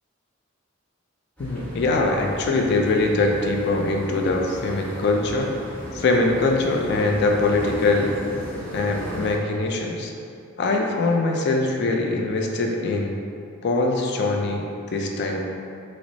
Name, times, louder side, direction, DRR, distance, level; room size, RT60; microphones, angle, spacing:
voice 1, 1.4-5.5 5.9-8.1 8.7-10.1 10.6-13.2 13.6-15.4, left 2 dB, 55° left, 1 dB, 0.4 m, -22 dB
sound 1, 1.4-9.4, equal, 5° left, 1.1 m, -36 dB
5.9 x 2.0 x 2.7 m, 2.4 s
head